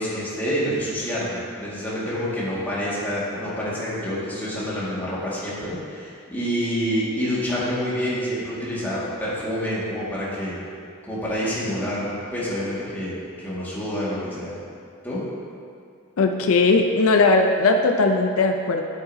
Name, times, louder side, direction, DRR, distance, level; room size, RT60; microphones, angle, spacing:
voice 1, 0.0-10.6 11.0-14.5 15.0-15.2, equal, 10° left, -9 dB, 1.9 m, -27 dB
voice 2, 16.2-18.8, left 3 dB, 80° left, 4 dB, 0.5 m, -18 dB
9.6 x 7.9 x 2.7 m, 2.4 s
head